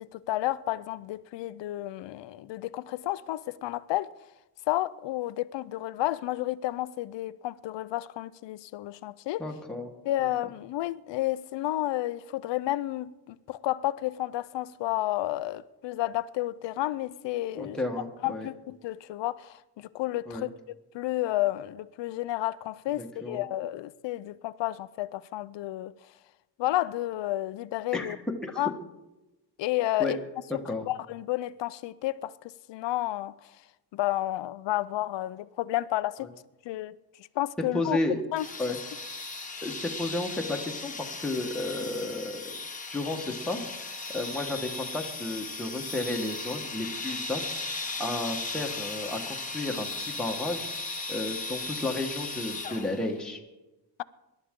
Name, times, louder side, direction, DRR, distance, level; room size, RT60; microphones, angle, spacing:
voice 1, 0.0-4.1 4.7-9.4 10.1-17.8 18.2-20.5 20.9-25.9 26.6-28.2 28.6-28.7 29.6-30.2 30.9-32.3 32.7-33.3 33.9-36.3 36.7-37.0 37.4-38.0 38.3-38.5, left 15 dB, 80° left, 0.6 m, -31 dB
voice 2, 9.4-9.9 10.2-10.3 17.6-18.5 20.3-20.5 23.0-23.4 27.9-28.1 28.4-28.6 30.0-30.1 30.7-30.9 37.7-38.2 38.6-38.8 39.6-42.6 42.9-47.4 47.7-50.7 51.1-53.4, left 2 dB, ahead, 1.3 m, -33 dB
sound 1, 38.4-53.1, left 3 dB, 20° left, 1.3 m, -37 dB
24.5 x 11.5 x 3.7 m
cardioid pair, 155°, 43 cm